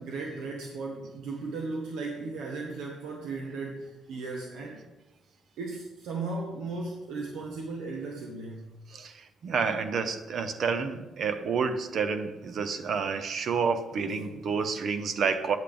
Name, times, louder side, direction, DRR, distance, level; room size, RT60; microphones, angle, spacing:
voice 1, 0.0-4.9 5.6-8.8 14.6-14.7, right 3 dB, 85° right, 1.1 m, -36 dB
voice 2, 8.9-15.6, right 5 dB, 60° right, 0.7 m, -29 dB
8.8 x 8.2 x 3.4 m
cardioid pair, 90°, 0 cm